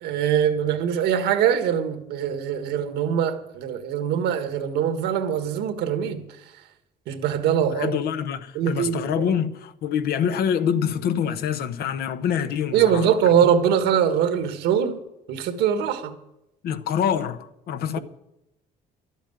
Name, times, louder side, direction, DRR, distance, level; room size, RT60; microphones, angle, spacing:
voice 1, 0.0-6.2 7.1-8.0 8.5-9.3 12.7-16.1, right 8 dB, 85° right, 1.6 m, -23 dB
voice 2, 7.7-13.1 16.6-18.0, left 8 dB, 65° left, 1.0 m, -25 dB
12.5 x 8.3 x 9.4 m
cardioid pair, 110°, 17 cm